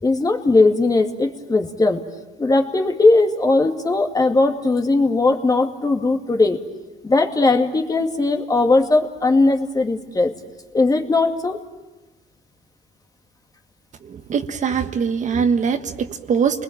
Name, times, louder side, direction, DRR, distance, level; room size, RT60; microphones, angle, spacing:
voice 1, 0.0-2.0 2.4-6.6 7.0-10.3 10.7-11.6, left 3 dB, 20° left, 3 dB, 2.4 m, -18 dB
voice 2, 14.3-16.6, right 6 dB, 45° right, 7 dB, 1.4 m, -22 dB
30.0 x 21.0 x 9.0 m, 1.1 s
cardioid pair, 110°, 17 cm